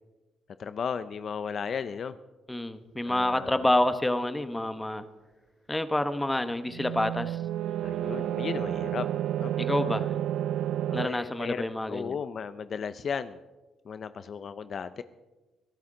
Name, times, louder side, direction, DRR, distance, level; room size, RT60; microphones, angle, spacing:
voice 1, 0.6-2.1 3.1-3.7 7.8-9.1 9.4-9.5 10.9-13.4 13.9-15.0, left 6 dB, 50° left, 13 dB, 0.5 m, -35 dB
voice 2, 2.5-5.0 5.7-7.4 9.6-10.1 10.9-12.2, left 1 dB, 10° left, 11 dB, 1.1 m, -28 dB
sound 1, 6.7-11.1, right 11 dB, 75° right, 0.4 m, -30 dB
22.5 x 12.5 x 3.8 m, 1.1 s
cardioid pair, 90°, 0 cm